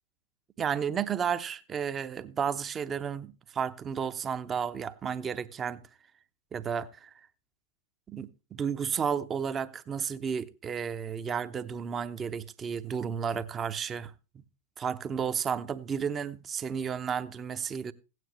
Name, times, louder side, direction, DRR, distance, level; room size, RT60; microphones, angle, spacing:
voice 1, 0.6-5.8 6.5-7.1 8.1-14.4 14.8-17.9, right 7 dB, 20° right, 0.8 m, -32 dB
16.0 x 9.4 x 3.0 m
figure-of-eight pair, 95°, 0 cm